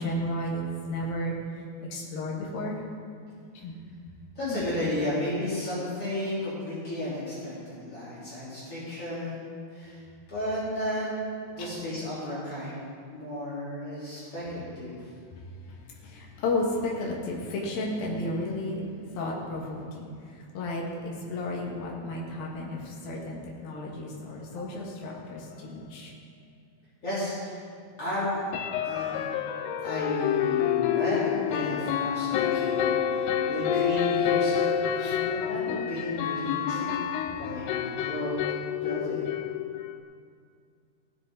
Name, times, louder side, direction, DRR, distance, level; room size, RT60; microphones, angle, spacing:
voice 1, 0.0-1.4 1.9-2.8 3.6-3.7 4.4-4.6 11.6-11.7 15.7-15.8 16.0-18.9 19.2-20.1 20.5-26.1 35.0-35.2, left 1 dB, 65° left, -3 dB, 3.5 m, -33 dB
voice 2, 4.4-10.0 10.3-11.1 11.5-12.8 13.1-15.0 27.0-27.7 28.0-28.4 28.8-29.3 29.8-37.0 37.4-38.4 38.8-39.2, left 1 dB, 35° left, -10 dB, 4.6 m, -33 dB
sound 1, 24.6-24.7 25.1-25.2 25.5-25.6 28.5-40.0, left 9 dB, 80° left, 2.7 m, -28 dB
17.0 x 10.0 x 4.0 m, 2.2 s
omnidirectional pair, 4.7 m